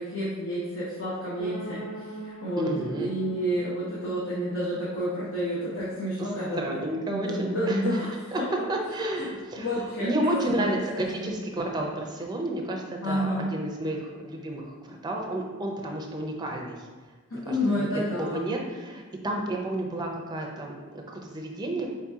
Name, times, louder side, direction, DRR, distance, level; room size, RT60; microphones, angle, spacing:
voice 1, 0.0-6.6 7.1-8.1 9.5-10.4 10.9-11.3 13.0-13.5 17.3-18.5, equal, 70° left, -9 dB, 0.9 m, -30 dB
sound 1, 1.4-7.3, right 1 dB, 15° left, 0.9 m, -44 dB
voice 2, 2.6-3.1 6.2-6.3 6.6-8.0 8.3-8.4 8.7-16.9 17.4-21.9, right 1 dB, 20° right, 1 dB, 0.5 m, -31 dB
4.4 x 2.8 x 3.5 m, 1.3 s
head